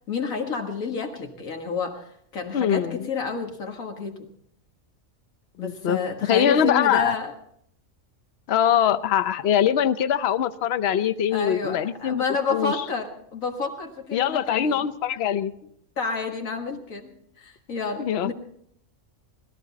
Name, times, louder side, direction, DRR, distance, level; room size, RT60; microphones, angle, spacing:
voice 1, 0.1-4.3 5.6-7.3 11.3-14.9 16.0-17.1 17.4-18.3, left 4 dB, 85° left, 3 dB, 2.0 m, -30 dB
voice 2, 2.5-3.1 5.6-6.0 6.3-7.2 8.5-12.2 12.5-12.8 14.1-15.5 18.0-18.3, left 9 dB, 55° left, 13 dB, 0.9 m, -22 dB
20.0 x 14.0 x 4.0 m, 0.69 s
omnidirectional pair, 1.4 m